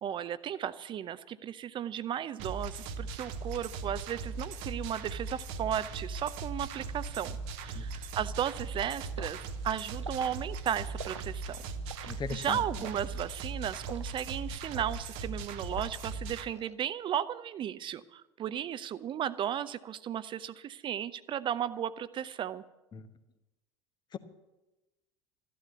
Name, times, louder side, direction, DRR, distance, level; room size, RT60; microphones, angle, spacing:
voice 1, 0.0-7.4 7.6-11.6 12.3-22.6, right 10 dB, 35° right, 16 dB, 0.7 m, -35 dB
sound 1, 2.4-16.4, right 4 dB, 55° right, 1.0 m, -39 dB
Liquid, 9.2-9.4 10.0-10.3 11.0-11.2 11.9-12.2 12.8-13.1 13.8-14.1 14.8-15.0 15.7-16.1 16.5-16.7, right 5 dB, 85° right, 0.5 m, -44 dB
voice 2, 12.1-12.6 22.9-23.1 24.1-24.2, left 5 dB, 30° left, 10 dB, 1.2 m, -38 dB
14.5 x 11.5 x 7.0 m, 1.0 s
figure-of-eight pair, 70°, 15 cm